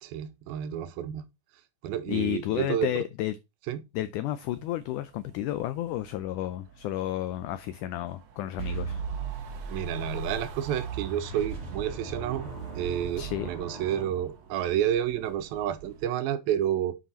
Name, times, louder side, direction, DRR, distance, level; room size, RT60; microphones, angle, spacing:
voice 1, 0.0-1.2 1.8-3.0 3.7-3.8 9.7-12.5 12.8-17.0, right 10 dB, 90° right, 2.6 m, -30 dB
voice 2, 2.1-3.4 3.9-9.0 13.2-13.5, left 14 dB, 90° left, 1.7 m, -32 dB
sound 1, 4.4-16.1, right 7 dB, 60° right, 2.3 m, -51 dB
sound 2, 8.6-14.8, right 5 dB, 40° right, 2.8 m, -37 dB
7.6 x 5.5 x 4.2 m
omnidirectional pair, 4.2 m